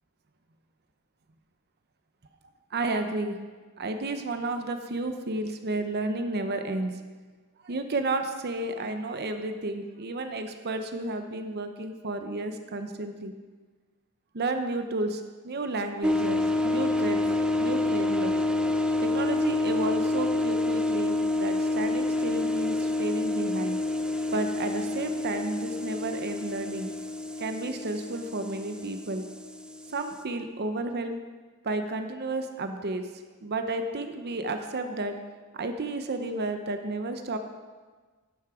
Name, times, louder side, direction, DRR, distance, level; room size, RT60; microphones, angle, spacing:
voice 1, 2.7-3.4 3.8-7.0 7.6-13.3 14.3-17.2 17.6-18.3 19.0-23.8 24.3-26.9 27.4-29.3 29.9-31.2 31.6-33.1 33.4-35.2 35.5-37.4, right 2 dB, 50° right, 7 dB, 0.7 m, -32 dB
sound 1, 16.0-30.2, left 2 dB, 5° right, 0.4 m, -28 dB
11.5 x 8.4 x 4.9 m, 1.4 s
head